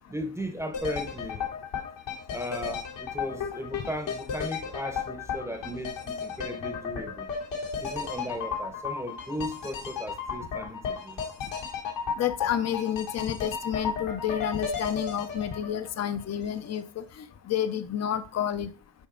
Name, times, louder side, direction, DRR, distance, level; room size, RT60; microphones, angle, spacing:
voice 1, 0.1-1.5 2.3-7.3 7.8-11.2, equal, 5° right, 0.8 m, -36 dB
sound 1, 0.7-16.7 17.0-17.1, left 6 dB, 80° left, 2.7 m, -34 dB
voice 2, 12.2-17.0 17.5-18.7, left 9 dB, 40° left, 0.6 m, -30 dB
8.8 x 5.1 x 3.8 m
wide cardioid pair, 175°, 43 cm